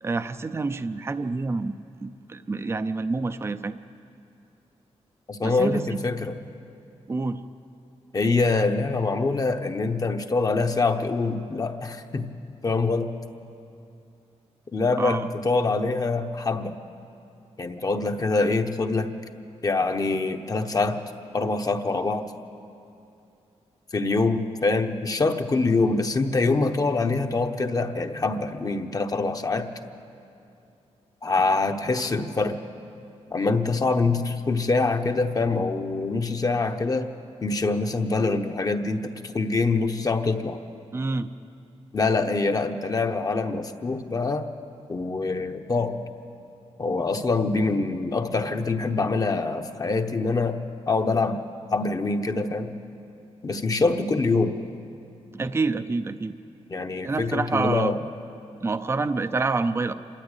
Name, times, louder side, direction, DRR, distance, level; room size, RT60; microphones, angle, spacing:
voice 1, 0.0-3.8 5.4-6.0 7.1-7.4 15.0-15.3 40.9-41.3 55.3-56.4 57.0-57.9 58.6-59.9, right 3 dB, 20° right, 10 dB, 0.5 m, -27 dB
voice 2, 5.3-6.4 8.1-12.3 12.6-13.1 14.7-16.8 17.6-19.1 19.6-21.0 21.3-22.3 23.9-29.7 31.2-32.6 33.3-37.1 37.4-40.6 41.9-44.5 44.9-46.0 46.8-50.6 50.9-51.4 51.7-52.7 53.4-54.6 56.7-58.0, left 3 dB, 30° left, 6 dB, 1.0 m, -24 dB
26.5 x 13.5 x 9.0 m, 2.6 s
wide cardioid pair, 145°, 12 cm